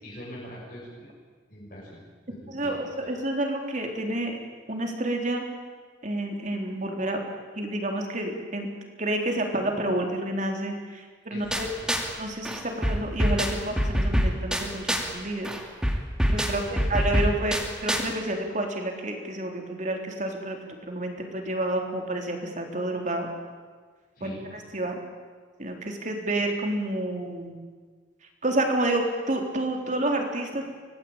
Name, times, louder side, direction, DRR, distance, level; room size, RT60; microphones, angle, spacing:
voice 1, 0.0-1.1 1.5-2.0 2.3-3.1 11.3-11.9 16.5-16.8 24.2-24.5, equal, 50° left, -6 dB, 7.2 m, -43 dB
voice 2, 2.5-4.4 4.7-5.4 6.0-7.2 7.6-8.7 9.0-11.7 12.2-15.5 16.3-23.3 24.2-25.0 25.6-27.5 28.4-30.7, right 1 dB, 40° right, 2 dB, 3.9 m, -29 dB
sound 1, 11.5-12.2 12.4-15.2 15.4-18.1, equal, 5° right, 2.4 m, -26 dB
25.5 x 18.5 x 8.9 m, 1.5 s
head